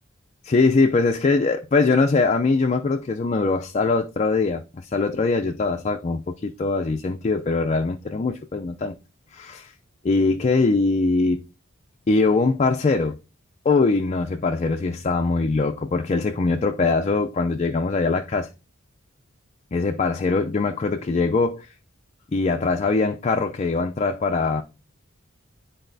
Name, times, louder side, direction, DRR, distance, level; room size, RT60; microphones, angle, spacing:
voice 1, 0.4-9.0 9.3-9.7 10.0-11.4 12.1-13.2 13.6-18.5 19.7-21.7 22.3-24.6, left 3 dB, 35° left, 0.4 m, -22 dB
9.9 x 4.0 x 2.6 m
head